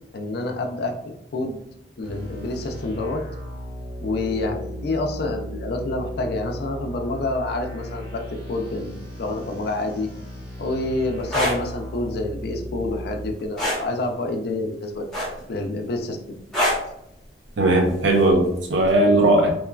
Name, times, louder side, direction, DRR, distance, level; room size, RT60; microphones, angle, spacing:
voice 1, 0.1-0.9 1.3-1.6 2.0-3.2 4.0-10.1 10.6-15.1 15.5-16.4, left 2 dB, 60° left, 4 dB, 0.4 m, -28 dB
sound 1, 2.0-13.3, equal, 30° right, 1.0 m, -36 dB
sound 2, 11.2-11.6 13.6-13.8 15.1-15.6 16.5-16.9 18.3-18.5, left 1 dB, 5° left, 0.8 m, -23 dB
voice 2, 17.6-19.5, right 1 dB, 85° right, 2 dB, 0.6 m, -18 dB
3.0 x 2.2 x 2.3 m, 0.77 s
head